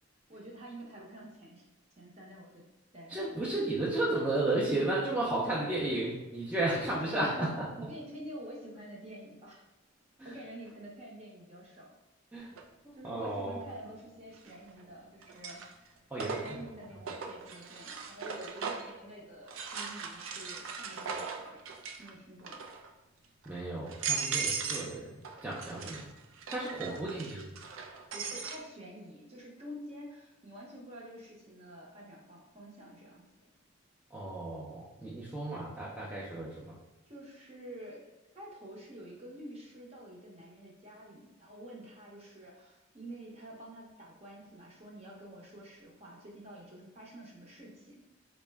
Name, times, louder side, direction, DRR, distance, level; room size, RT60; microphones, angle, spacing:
voice 1, 0.3-1.7 2.0-2.6 2.9-3.3 6.6-9.6 10.2-12.0 12.9-15.6 16.4-21.6 22.0-22.6 25.7-25.9 26.7-27.0 28.1-33.2 37.1-38.0 38.3-48.0, right 1 dB, 30° right, -3 dB, 0.8 m, -48 dB
voice 2, 3.1-7.7 10.2-10.4 12.3-12.5 12.8-13.6 16.1-16.7 23.5-26.1 26.5-27.5 34.1-36.8, right 2 dB, 5° right, -7 dB, 0.5 m, -33 dB
sound 1, 12.6-12.7 14.4-14.8 15.2-19.0 19.5-22.1 22.4-22.9 23.4-23.5 23.9-24.9 25.2-28.6, right 6 dB, 75° right, 0.4 m, -38 dB
4.1 x 2.1 x 3.4 m, 1.1 s
head